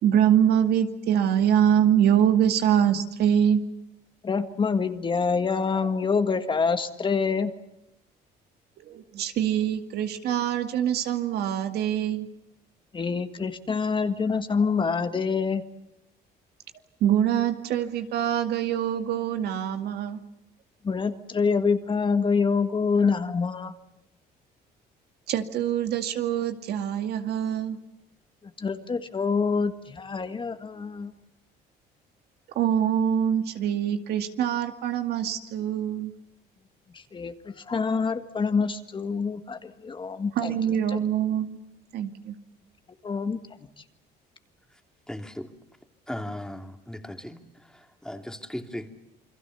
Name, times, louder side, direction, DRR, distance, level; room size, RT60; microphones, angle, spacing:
voice 1, 0.0-3.6 8.9-12.3 17.0-20.2 25.3-27.8 32.6-36.1 40.4-41.6 41.9-42.3, right 9 dB, 70° right, 7 dB, 2.2 m, -24 dB
voice 2, 4.2-7.5 12.9-15.6 20.8-23.7 28.6-31.1 37.1-40.5 40.9-41.0 43.0-43.4, left 5 dB, 30° left, 8 dB, 1.7 m, -26 dB
voice 3, 45.1-45.5 46.1-47.4 47.7-48.9, left 1 dB, 5° left, 5 dB, 2.6 m, -37 dB
28.5 x 22.5 x 7.1 m, 0.90 s
cardioid pair, 110°, 17 cm